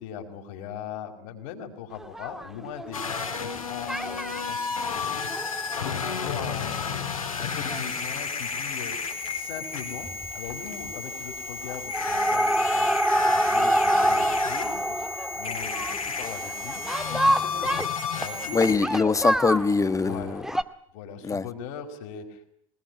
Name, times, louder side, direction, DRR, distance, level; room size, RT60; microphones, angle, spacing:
voice 1, 0.0-7.1 7.4-9.0 9.3-16.8 17.1-17.8 18.1-18.8 20.0-20.5 20.9-22.4, left 7 dB, 60° left, 4 dB, 5.0 m, -40 dB
sound 1, 2.0-3.6 3.9-4.4 4.9-7.0 7.4-7.5 7.7-7.8 8.1-8.2 9.6-9.8 10.0-10.5 10.8-11.3 11.7-20.6, right 1 dB, 5° right, 1.8 m, -27 dB
sound 2, 2.9-18.8, left 5 dB, 85° left, 3.9 m, -32 dB
voice 2, 18.5-20.4 21.2-21.4, left 4 dB, 20° left, 14 dB, 1.5 m, -23 dB
23.0 x 20.5 x 9.6 m, 0.66 s
figure-of-eight pair, 70°, 18 cm